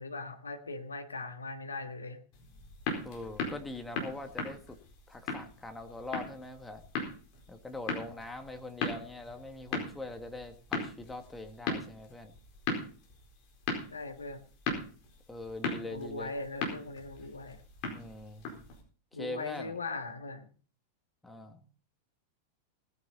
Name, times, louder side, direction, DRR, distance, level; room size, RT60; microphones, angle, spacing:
voice 1, 0.0-2.2 13.9-14.4 15.8-17.6 19.1-20.5, left 3 dB, 75° left, 8 dB, 1.5 m, -40 dB
sound 1, 2.3-18.8, left 3 dB, 45° left, 4.6 m, -39 dB
voice 2, 3.0-4.8 5.1-6.8 7.5-12.3 15.3-16.3 17.9-18.5 19.1-19.8 21.2-21.6, left 2 dB, 5° left, 5 dB, 1.9 m, -42 dB
19.0 x 9.6 x 4.1 m, 0.39 s
figure-of-eight pair, 90°, 0 cm